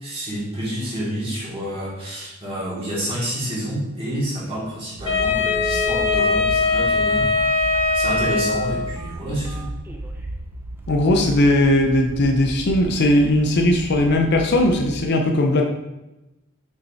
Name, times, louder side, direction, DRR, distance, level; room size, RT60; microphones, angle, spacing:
voice 1, 0.0-9.7, equal, 30° right, -6 dB, 2.1 m, -29 dB
Telephone, 4.7-4.8 5.4-10.3 10.8-10.9 11.2-11.4 11.8-12.1 12.4-12.5, right 1 dB, 10° right, 0.5 m, -35 dB
Wind instrument woodwind instrument, 5.0-8.9, left 4 dB, 25° left, 1.7 m, -21 dB
sound 1, 5.0-15.1, right 1 dB, 70° right, 0.5 m, -35 dB
voice 2, 10.9-15.6, left 1 dB, 55° left, 3 dB, 0.6 m, -18 dB
6.2 x 5.6 x 2.7 m, 0.98 s
head